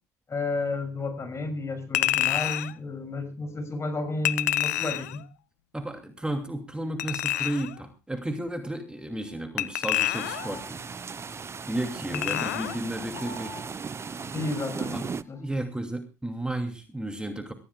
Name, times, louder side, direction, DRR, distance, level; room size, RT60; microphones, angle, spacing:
voice 1, 0.3-5.2 12.1-12.4 14.3-15.4, left 2 dB, 35° left, 6.5 m, -32 dB
Chink clink, 1.9-2.7 4.2-5.2 7.0-7.7 9.6-10.6 12.1-12.8 13.1-13.3, left 14 dB, 90° left, 0.6 m, -27 dB
voice 2, 5.7-10.8 11.7-13.6 15.4-17.5, right 1 dB, 10° right, 2.7 m, -33 dB
sound 1, 8.7-15.5, left 2 dB, 65° left, 2.3 m, -50 dB
sound 2, 10.1-15.2, right 5 dB, 30° right, 0.8 m, -37 dB
23.5 x 15.0 x 2.3 m
hypercardioid pair, 60°, 8 cm